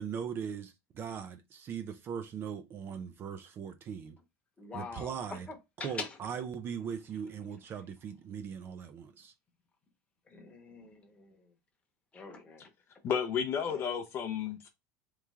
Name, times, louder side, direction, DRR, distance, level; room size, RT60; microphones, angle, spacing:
voice 1, 0.0-4.2 4.7-5.5 5.8-9.3, right 7 dB, 30° right, 0.4 m, -39 dB
voice 2, 4.6-6.2 10.3-11.5 12.1-12.7 13.7-13.8, left 4 dB, 15° left, 0.9 m, -44 dB
voice 3, 13.0-14.7, left 7 dB, 35° left, 0.5 m, -32 dB
3.3 x 3.1 x 3.5 m
cardioid pair, 165°, 8 cm